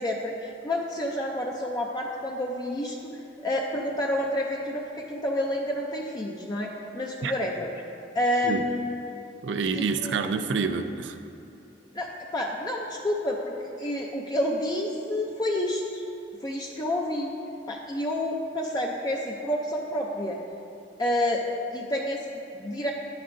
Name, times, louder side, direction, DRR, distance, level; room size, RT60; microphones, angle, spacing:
voice 1, 0.0-3.1 3.4-7.7 8.1-9.0 9.8-10.3 11.9-16.0 16.4-17.3 17.7-20.4 21.0-21.4 21.7-22.2 22.5-22.9, left 1 dB, 20° left, -1 dB, 0.5 m, -29 dB
voice 2, 9.4-11.2, right 5 dB, 80° right, 8 dB, 0.4 m, -27 dB
10.5 x 9.4 x 2.6 m, 2.8 s
head